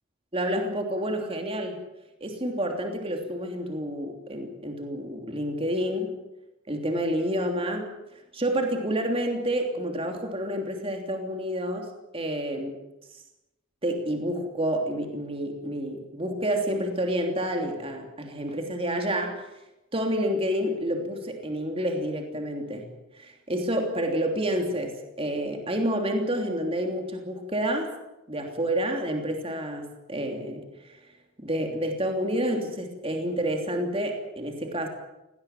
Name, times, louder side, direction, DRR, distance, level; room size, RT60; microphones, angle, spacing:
voice 1, 0.3-1.8 2.2-6.2 6.7-8.0 8.3-12.7 13.8-19.5 19.9-27.9 28.3-31.0 31.4-34.9, equal, 25° right, 4 dB, 3.1 m, -29 dB
18.5 x 18.0 x 9.2 m, 0.96 s
head